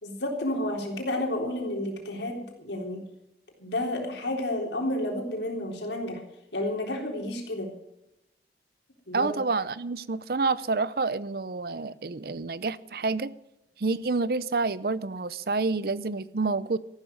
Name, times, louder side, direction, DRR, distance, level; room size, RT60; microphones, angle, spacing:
voice 1, 0.0-3.0 3.6-6.2 6.5-7.7 9.1-9.4, left 1 dB, 80° left, 2 dB, 3.8 m, -31 dB
voice 2, 9.1-13.3 13.8-16.8, right 3 dB, 60° right, 17 dB, 0.6 m, -28 dB
14.5 x 12.0 x 6.4 m, 0.87 s
head